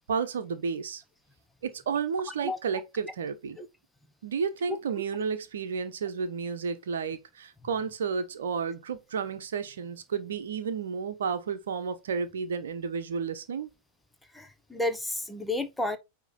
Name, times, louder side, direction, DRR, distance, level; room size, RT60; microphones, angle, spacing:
voice 1, 0.1-1.0 1.6-3.6 4.2-13.7, right 6 dB, 65° right, 0.9 m, -32 dB
voice 2, 14.3-16.0, left 2 dB, 5° left, 0.9 m, -31 dB
9.1 x 3.0 x 4.1 m
figure-of-eight pair, 90°, 0 cm